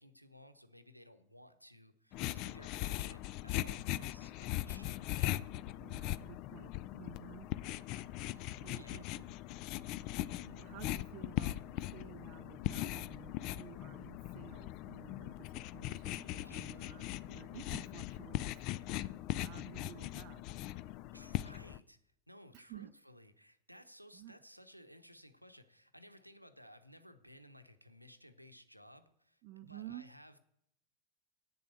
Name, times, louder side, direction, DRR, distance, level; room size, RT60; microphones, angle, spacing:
voice 1, 0.0-5.3 8.3-9.1 16.4-17.0 21.1-22.0 22.3-30.4, equal, 90° right, 9 dB, 0.8 m, -58 dB
sound 1, 2.1-21.8, left 15 dB, 40° left, 0.3 m, -40 dB
voice 2, 5.8-7.5 8.6-9.2 9.9-10.2 10.4-18.7 19.3-20.4 22.5-22.9 24.1-24.4 29.4-30.1, right 14 dB, 40° right, 12 dB, 0.4 m, -53 dB
8.6 x 6.8 x 7.8 m, 0.75 s
figure-of-eight pair, 90°, 0 cm